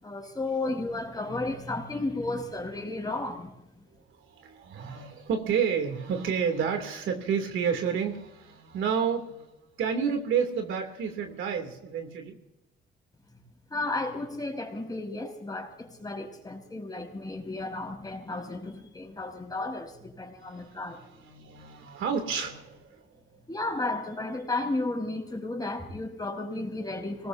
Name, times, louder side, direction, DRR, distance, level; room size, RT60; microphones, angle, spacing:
voice 1, 0.0-3.5 13.7-21.0 23.5-27.3, left 2 dB, 20° left, 1 dB, 5.1 m, -33 dB
voice 2, 4.2-9.5 9.8-12.4 20.3-23.0, right 7 dB, 80° right, 5 dB, 3.0 m, -30 dB
26.5 x 19.5 x 2.8 m, 0.88 s
cardioid pair, 90°, 20 cm